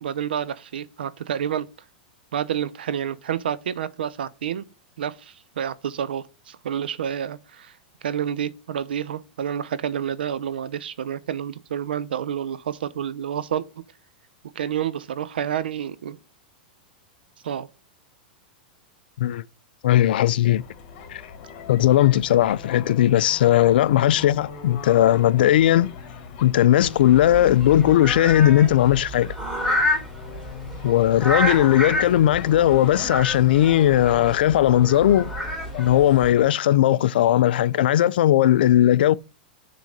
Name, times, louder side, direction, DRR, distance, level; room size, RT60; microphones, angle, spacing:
voice 1, 0.0-1.7 2.3-4.7 5.0-7.7 8.0-13.6 14.6-16.2 17.4-17.7, right 9 dB, 90° right, 0.6 m, -29 dB
voice 2, 19.8-20.6 21.1-21.2 21.7-25.9 26.4-29.3 30.8-35.3 35.8-39.1, left 12 dB, 75° left, 0.4 m, -18 dB
sound 1, 20.6-36.5, left 6 dB, 50° left, 2.3 m, -41 dB
sound 2, 26.8-36.3, equal, 10° right, 3.1 m, -29 dB
6.7 x 3.8 x 6.4 m
hypercardioid pair, 135°, 5 cm